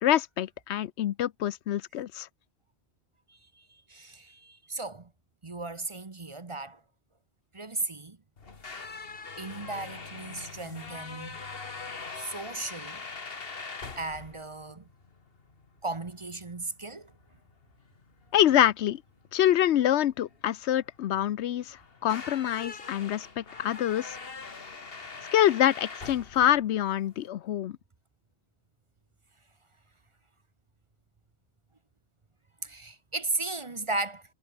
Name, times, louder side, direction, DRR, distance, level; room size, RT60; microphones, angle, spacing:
voice 1, 0.0-2.3 18.3-19.0 19.3-24.2 25.3-27.8, left 11 dB, 85° left, 0.9 m, -26 dB
voice 2, 3.3-5.1 5.4-6.8 7.5-8.2 9.4-11.5 12.1-13.0 14.0-14.9 15.8-17.1 32.6-34.2, right 3 dB, 30° right, 1.0 m, -36 dB
sound 1, 8.4-27.3, left 4 dB, 60° left, 2.0 m, -43 dB
omnidirectional pair, 1.1 m